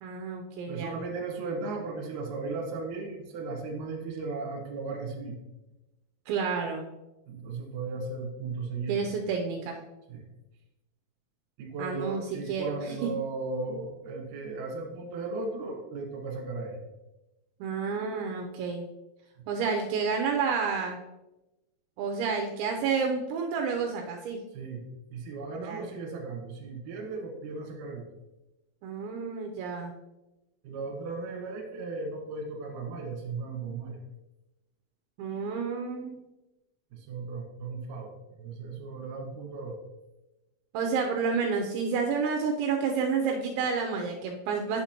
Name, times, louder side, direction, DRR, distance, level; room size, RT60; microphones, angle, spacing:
voice 1, 0.0-0.9 6.3-6.9 8.9-9.8 11.8-12.2 12.5-13.1 17.6-18.8 19.5-21.0 22.0-24.4 25.6-25.9 28.8-29.9 35.2-36.2 40.7-44.8, right 5 dB, 90° right, 2 dB, 2.6 m, -30 dB
voice 2, 0.7-5.4 7.3-9.0 10.1-10.3 11.6-16.8 24.5-28.1 30.6-34.0 36.9-39.8, right 3 dB, 65° right, 0 dB, 2.2 m, -36 dB
8.3 x 7.0 x 2.9 m, 0.99 s
omnidirectional pair, 5.9 m